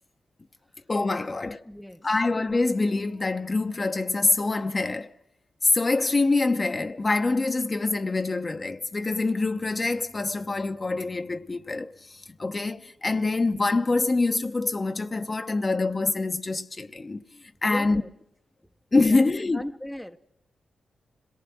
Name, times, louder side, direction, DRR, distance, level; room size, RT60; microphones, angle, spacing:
voice 1, 0.9-1.6 2.0-5.1 5.6-18.0 18.9-19.6, left 3 dB, 35° left, 0.9 m, -25 dB
voice 2, 1.6-2.1 17.6-18.1 19.1-19.2 19.5-20.2, left 1 dB, 5° left, 0.8 m, -37 dB
26.0 x 18.5 x 6.3 m
cardioid pair, 60°, 0 cm